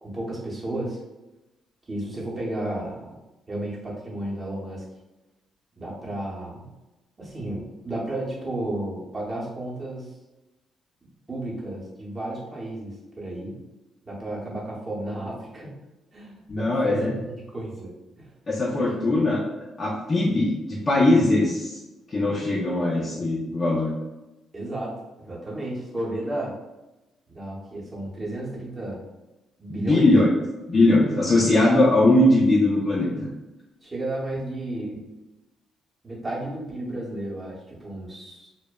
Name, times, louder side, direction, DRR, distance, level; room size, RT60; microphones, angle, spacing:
voice 1, 0.0-1.0 1.9-3.2 3.5-4.8 5.8-6.7 7.2-10.2 11.3-13.6 14.0-15.8 16.1-17.9 18.2-18.3 18.9-19.2 24.5-26.5 27.3-29.0 29.6-30.1 33.8-35.0 36.0-38.5, right 1 dB, 25° right, -5 dB, 0.8 m, -33 dB
voice 2, 16.5-17.1 18.5-19.4 19.8-21.8 22.1-23.9 29.7-30.3 30.7-33.1, left 2 dB, 35° left, -6 dB, 0.5 m, -20 dB
2.6 x 2.1 x 2.2 m, 1.0 s
cardioid pair, 90°, 0 cm